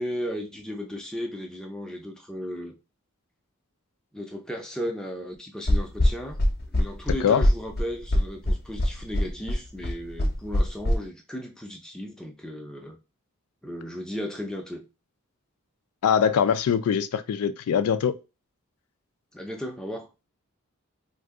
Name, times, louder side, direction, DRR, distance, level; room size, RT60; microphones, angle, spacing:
voice 1, 0.0-2.8 4.1-6.4 6.7-13.0 13.6-14.8 19.3-20.1, equal, 5° left, 0.5 m, -35 dB
sound 1, 5.7-10.9, left 1 dB, 45° left, 0.6 m, -22 dB
voice 2, 16.0-18.2, left 7 dB, 90° left, 0.3 m, -22 dB
2.6 x 2.4 x 3.5 m
head